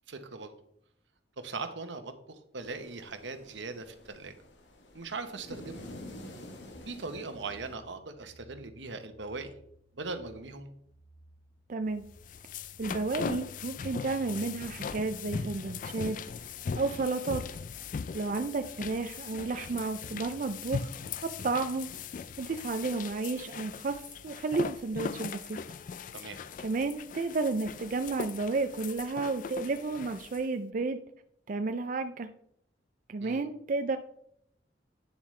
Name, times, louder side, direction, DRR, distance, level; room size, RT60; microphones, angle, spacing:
voice 1, 0.1-0.5 1.4-4.3 4.9-5.9 6.9-9.5 10.0-10.7 26.1-26.4 33.2-33.4, right 3 dB, 85° right, 8 dB, 1.0 m, -40 dB
sound 1, 2.6-7.7, left 1 dB, 85° left, 1.2 m, -48 dB
sound 2, 6.7-18.6, right 1 dB, 15° right, 1.5 m, -60 dB
voice 2, 11.7-12.0 12.8-16.5 16.8-17.4 18.1-20.9 21.2-25.6 26.2-26.3 26.6-31.0 31.5-32.3 33.1-34.0, right 3 dB, 45° right, 8 dB, 0.4 m, -32 dB
sound 3, 12.0-30.5, left 5 dB, 45° left, 0.3 m, -39 dB
9.7 x 7.2 x 3.2 m, 0.72 s
head